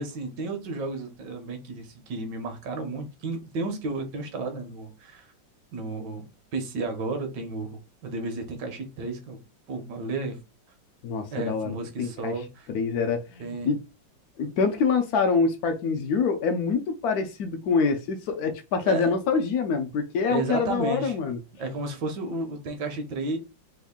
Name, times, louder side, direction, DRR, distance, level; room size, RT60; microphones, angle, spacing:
voice 1, 0.0-5.3 5.7-6.2 6.5-9.4 9.7-10.4 11.3-12.7 13.4-13.7 18.8-19.1 20.3-21.2 21.6-23.4, right 3 dB, 70° right, 1.3 m, -32 dB
voice 2, 11.0-11.7 12.0-12.3 12.7-13.8 14.4-21.4, left 5 dB, 75° left, 0.8 m, -25 dB
3.5 x 2.3 x 3.5 m
omnidirectional pair, 2.0 m